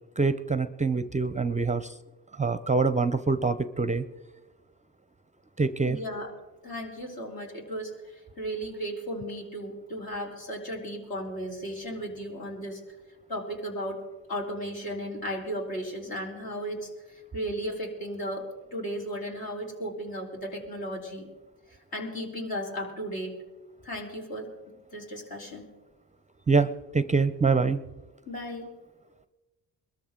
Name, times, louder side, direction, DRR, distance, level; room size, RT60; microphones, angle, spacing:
voice 1, 0.2-1.9 2.4-4.0 5.6-6.0 26.5-27.8, right 4 dB, 20° right, 13 dB, 0.5 m, -25 dB
voice 2, 5.9-6.4 6.6-12.8 13.3-21.3 21.9-23.4 23.8-25.7 28.3-28.7, equal, 60° left, -1 dB, 4.1 m, -35 dB
22.0 x 13.5 x 3.8 m, 1.2 s
supercardioid pair, 65°, 41 cm